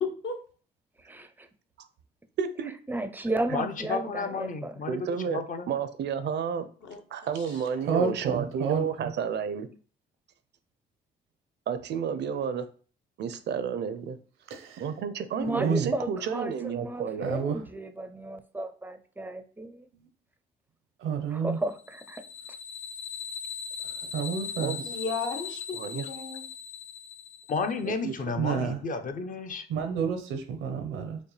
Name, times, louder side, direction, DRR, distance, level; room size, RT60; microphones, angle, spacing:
voice 1, 0.0-0.4 6.8-7.0 7.4-7.5 7.8-8.4 24.8-26.4, left 4 dB, 65° left, 0.9 m, -35 dB
voice 2, 1.0-1.5 2.9-4.7 15.4-19.9 21.3-22.2, right 1 dB, 10° right, 0.4 m, -34 dB
voice 3, 2.4-2.7 4.9-5.4 5.7-6.7 7.1-9.7 11.7-12.7 13.2-14.2 14.8-17.3 24.6-24.8 25.8-26.1 27.9-28.1, right 7 dB, 60° right, 0.5 m, -31 dB
voice 4, 3.5-5.7 27.5-29.7, left 4 dB, 40° left, 0.5 m, -32 dB
voice 5, 7.9-9.1 14.5-14.9 15.5-15.9 17.2-17.6 21.0-21.6 24.1-24.8 28.4-28.8 29.7-31.2, right 6 dB, 90° right, 0.8 m, -29 dB
sound 1, 21.8-27.7, left 6 dB, 90° left, 0.5 m, -39 dB
5.2 x 2.2 x 3.1 m
cardioid pair, 90°, 20 cm